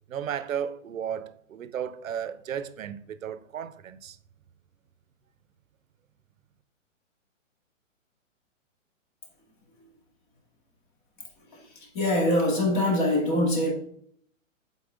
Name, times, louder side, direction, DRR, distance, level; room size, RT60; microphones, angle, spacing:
voice 1, 0.1-4.2, right 8 dB, 85° right, 0.6 m, -34 dB
voice 2, 11.5-13.7, left 1 dB, 35° left, 2.1 m, -24 dB
7.0 x 4.3 x 3.7 m
hypercardioid pair, 150°, 39 cm